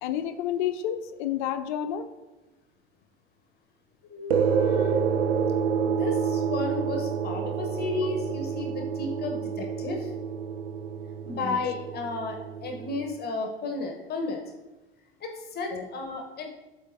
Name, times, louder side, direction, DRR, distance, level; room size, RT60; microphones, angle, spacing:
voice 1, 0.0-2.1 8.0-8.1 11.3-11.6 15.7-15.8, left 10 dB, 50° left, 10 dB, 0.7 m, -30 dB
voice 2, 4.0-5.0 5.8-10.1 11.3-14.4 15.2-16.5, left 3 dB, 30° left, 3 dB, 1.3 m, -33 dB
sound 1, 4.3-13.0, right 6 dB, 65° right, 0.7 m, -28 dB
12.5 x 4.3 x 2.9 m, 1.1 s
figure-of-eight pair, 75°, 32 cm